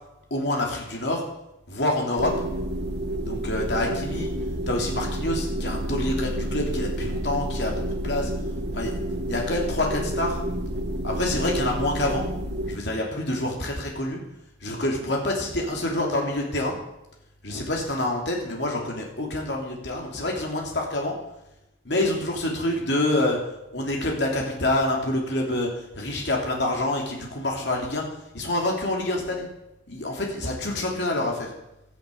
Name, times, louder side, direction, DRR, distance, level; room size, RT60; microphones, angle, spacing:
voice 1, 0.3-1.2 1.7-2.3 3.2-4.3 4.7-8.3 8.7-8.9 9.3-10.4 11.0-12.3 12.7-14.2 14.6-16.7 17.4-21.1 21.8-23.4 23.7-25.7 25.9-28.0 28.3-29.5 29.9-31.5, left 1 dB, 70° left, 0 dB, 3.0 m, -27 dB
sound 1, 2.2-12.7, right 1 dB, 65° right, 1.8 m, -29 dB
13.0 x 10.5 x 8.5 m, 0.90 s
head